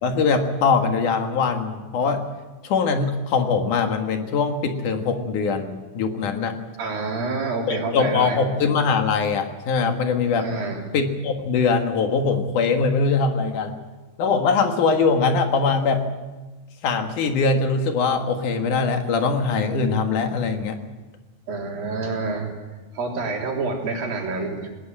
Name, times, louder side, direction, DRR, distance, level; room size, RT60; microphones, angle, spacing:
voice 1, 0.0-2.2 2.6-6.6 7.7-10.5 10.9-13.8 14.2-16.0 16.8-20.8, left 4 dB, 65° left, 5 dB, 3.0 m, -22 dB
voice 2, 6.8-8.4 10.3-10.8 21.5-22.5 22.9-24.7, right 3 dB, 85° right, 0 dB, 5.3 m, -27 dB
20.0 x 18.5 x 8.8 m, 1.2 s
omnidirectional pair, 4.0 m